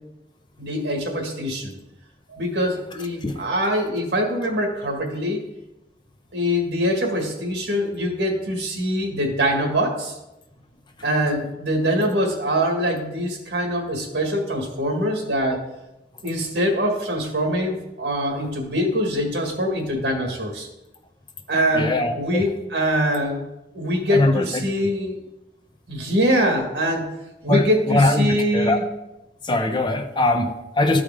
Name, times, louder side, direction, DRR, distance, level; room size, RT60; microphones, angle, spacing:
voice 1, 0.6-1.7 2.3-5.4 6.3-10.2 11.0-15.6 16.2-20.7 21.5-23.4 23.7-25.2 25.9-27.1 27.4-28.8, equal, 80° right, 2 dB, 1.7 m, -23 dB
voice 2, 21.7-22.5 24.1-24.6 27.5-28.8 29.4-31.0, left 2 dB, 25° left, 6 dB, 0.6 m, -21 dB
12.5 x 4.9 x 3.6 m, 0.96 s
head